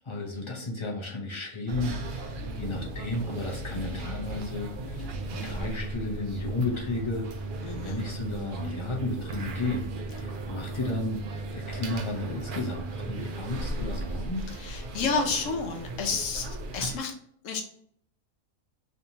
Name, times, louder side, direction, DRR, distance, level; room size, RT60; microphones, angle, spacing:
voice 1, 0.0-11.2 11.5-14.4, left 2 dB, 40° left, -1 dB, 0.4 m, -33 dB
sound 1, 1.7-17.0, right 2 dB, 70° right, 0.4 m, -36 dB
voice 2, 7.6-8.0 14.6-17.1 17.4-17.6, left 4 dB, 70° left, 3 dB, 1.0 m, -30 dB
3.3 x 2.8 x 2.7 m, 0.64 s
omnidirectional pair, 1.4 m